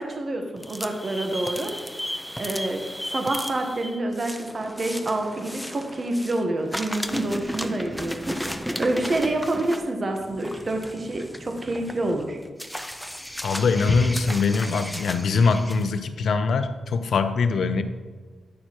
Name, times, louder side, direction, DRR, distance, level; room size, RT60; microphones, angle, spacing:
voice 1, 0.0-1.7 2.3-2.8 3.1-8.4 8.8-12.4, right 2 dB, 45° right, 3 dB, 1.2 m, -27 dB
sound 1, 0.6-6.4 6.7-15.9, equal, ahead, 0.6 m, -34 dB
voice 2, 13.4-17.8, left 4 dB, 75° left, 10 dB, 0.6 m, -22 dB
9.5 x 6.6 x 3.0 m, 1.5 s
cardioid pair, 80°, 0 cm